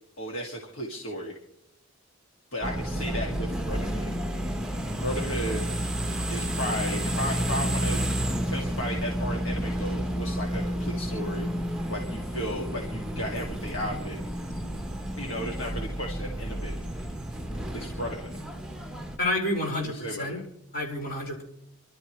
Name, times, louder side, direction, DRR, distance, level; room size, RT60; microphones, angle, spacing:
voice 1, 0.2-1.4 2.5-4.1 5.0-5.6 6.3-8.0 8.5-14.2 15.1-16.7 17.7-18.3 19.8-20.4, equal, 65° left, -1 dB, 2.4 m, -34 dB
sound 1, 2.6-19.2, equal, 5° right, 1.2 m, -31 dB
voice 2, 19.2-20.4 20.7-21.4, left 1 dB, 50° left, -2 dB, 5.4 m, -29 dB
28.5 x 12.5 x 3.2 m, 0.76 s
head